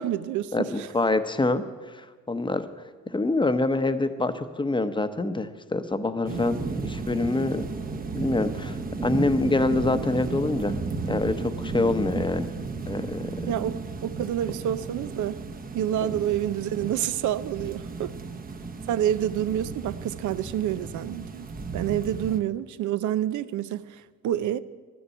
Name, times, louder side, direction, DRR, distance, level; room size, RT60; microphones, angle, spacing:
voice 1, 0.0-0.9 13.5-13.7 14.0-15.4 15.7-18.1 18.9-21.5 21.7-24.6, right 11 dB, 75° right, 0.6 m, -28 dB
voice 2, 0.5-1.6 1.9-2.7 3.1-7.6 8.1-8.8 9.0-10.8 11.1-12.5 12.9-13.3, left 2 dB, 15° left, 0.8 m, -26 dB
sound 1, 6.3-22.4, right 4 dB, 30° right, 0.9 m, -34 dB
12.0 x 7.0 x 9.0 m
cardioid pair, 90°, 30 cm